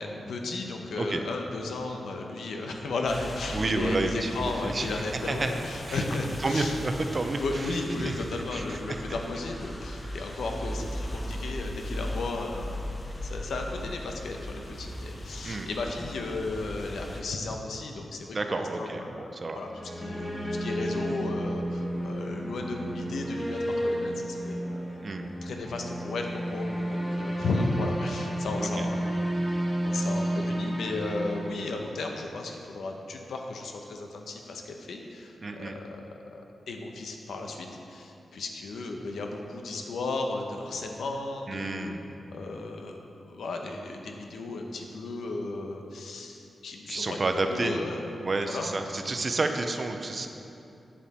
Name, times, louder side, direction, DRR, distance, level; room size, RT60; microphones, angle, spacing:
voice 1, 0.0-6.7 7.3-25.0 25.4-29.1 29.5-36.0 36.3-41.9 42.3-48.2 48.4-48.7, left 2 dB, 85° left, 2 dB, 0.9 m, -34 dB
sound 1, 3.1-17.2, left 1 dB, 30° left, 0.9 m, -38 dB
voice 2, 3.5-5.5 5.9-6.0 6.4-8.2 8.5-9.2 15.4-15.7 18.3-19.6 25.0-25.2 28.6-28.9 35.4-35.7 41.5-42.0 46.9-47.8 48.2-50.3, right 2 dB, 35° right, 5 dB, 0.6 m, -30 dB
sound 2, 19.5-32.3, equal, 5° left, 1.6 m, -32 dB
8.6 x 7.3 x 4.3 m, 2.8 s
wide cardioid pair, 125°, 0 cm